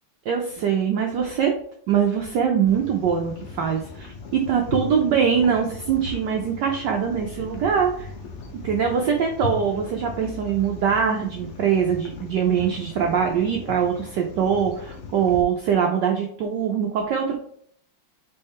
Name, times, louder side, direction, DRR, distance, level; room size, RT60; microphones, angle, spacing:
voice 1, 0.3-1.5 1.9-8.1 8.6-17.4, right 7 dB, 70° right, 2 dB, 1.1 m, -23 dB
sound 1, 2.7-15.4, left 4 dB, 85° left, 0.6 m, -38 dB
4.3 x 3.5 x 3.6 m, 0.63 s
omnidirectional pair, 2.3 m